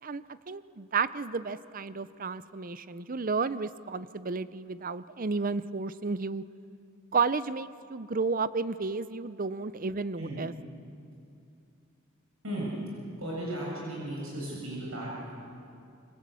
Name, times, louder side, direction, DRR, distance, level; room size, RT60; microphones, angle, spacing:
voice 1, 0.0-6.4 7.1-10.5, right 4 dB, 40° right, 15 dB, 0.7 m, -32 dB
voice 2, 13.2-15.3, right 1 dB, 80° right, -4 dB, 7.5 m, -35 dB
26.5 x 25.0 x 8.5 m, 2.6 s
head